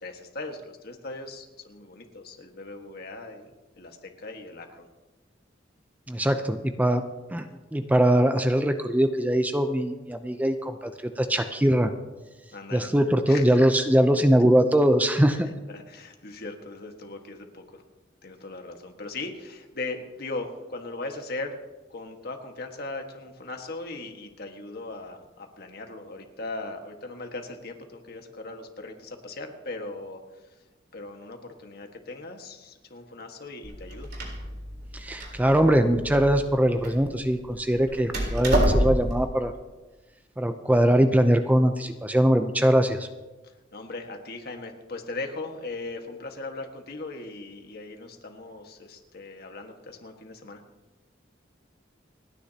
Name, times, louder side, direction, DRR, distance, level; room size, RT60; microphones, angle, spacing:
voice 1, 0.0-3.5 3.8-4.9 12.5-12.9 13.3-13.5 15.4-17.8 18.2-21.6 21.9-30.2 30.9-34.1 43.4-50.6, left 2 dB, 55° left, 4 dB, 1.6 m, -39 dB
voice 2, 6.1-7.0 7.3-10.9 11.2-11.9 12.7-15.5 34.9-39.5 40.4-43.1, right 1 dB, 10° right, 7 dB, 0.6 m, -22 dB
Door, 33.6-39.2, right 1 dB, 60° right, 3.9 m, -28 dB
29.5 x 10.0 x 2.9 m, 1.2 s
head